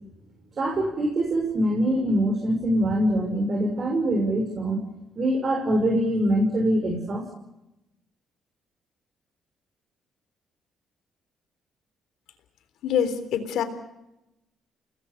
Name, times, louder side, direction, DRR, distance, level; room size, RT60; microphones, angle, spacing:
voice 1, 0.6-4.8 5.2-7.2, right 1 dB, 45° right, 2 dB, 6.3 m, -24 dB
voice 2, 12.8-13.6, left 8 dB, 80° left, 11 dB, 3.5 m, -25 dB
29.5 x 20.0 x 6.9 m, 0.91 s
cardioid pair, 90°, 0 cm